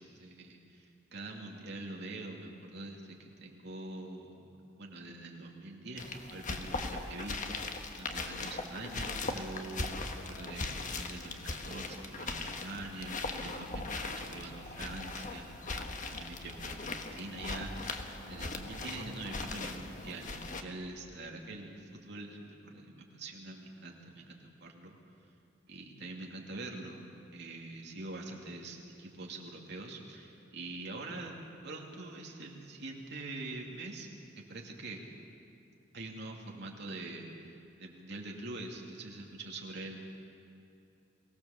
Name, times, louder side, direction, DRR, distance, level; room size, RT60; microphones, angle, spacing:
voice 1, 0.0-4.5 4.8-7.7 8.0-15.6 16.1-25.0 25.7-34.1 34.4-35.0 35.9-40.0, right 2 dB, 60° right, 0 dB, 2.7 m, -44 dB
sound 1, 6.0-20.6, left 3 dB, 40° left, 1.3 m, -39 dB
23.5 x 17.5 x 7.3 m, 2.7 s
head